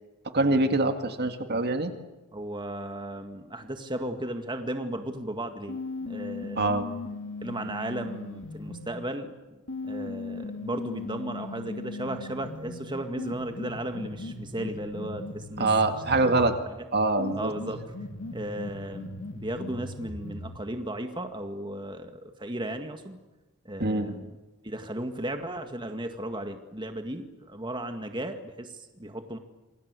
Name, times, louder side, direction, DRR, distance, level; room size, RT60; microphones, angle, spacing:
voice 1, 0.3-1.9 6.6-6.9 15.6-16.5 16.9-17.5 23.8-24.1, right 2 dB, 45° right, 7 dB, 2.2 m, -24 dB
voice 2, 2.3-6.7 7.4-16.8 17.3-17.8 18.3-23.2 23.7-24.3 24.6-29.4, right 1 dB, 20° right, 6 dB, 1.9 m, -35 dB
sound 1, 5.7-9.0 9.7-16.6 17.2-20.6, left 2 dB, 60° left, 2.7 m, -38 dB
27.5 x 23.5 x 8.3 m, 1.1 s
head